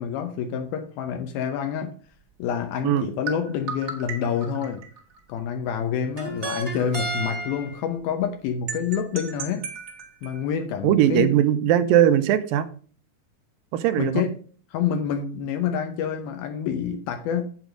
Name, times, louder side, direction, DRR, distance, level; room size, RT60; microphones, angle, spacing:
voice 1, 0.0-1.9 2.4-4.8 5.3-9.7 10.2-11.3 14.0-14.4 14.7-17.4, left 7 dB, 85° left, 2.7 m, -27 dB
sound 1, 3.3-5.2 6.2-7.8 8.7-10.4, right 2 dB, 35° right, 1.0 m, -33 dB
voice 2, 10.8-12.7 13.7-14.2, right 11 dB, 80° right, 2.4 m, -19 dB
8.2 x 7.2 x 5.1 m
omnidirectional pair, 4.2 m